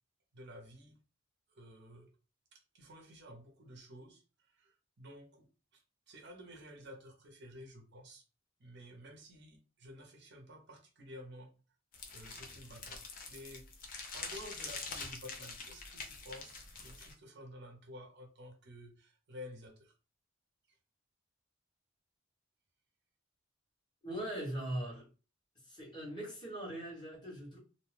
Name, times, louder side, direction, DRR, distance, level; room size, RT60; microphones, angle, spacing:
voice 1, 0.3-1.0 1.5-2.1 2.5-8.3 8.6-11.5 12.1-13.7 14.1-19.9, equal, 55° right, 0.7 m, -52 dB
sound 1, 11.9-17.1, left 4 dB, 45° left, 0.6 m, -45 dB
voice 2, 24.0-25.1 25.7-27.6, right 1 dB, 25° left, 1.3 m, -40 dB
2.5 x 2.2 x 3.3 m
head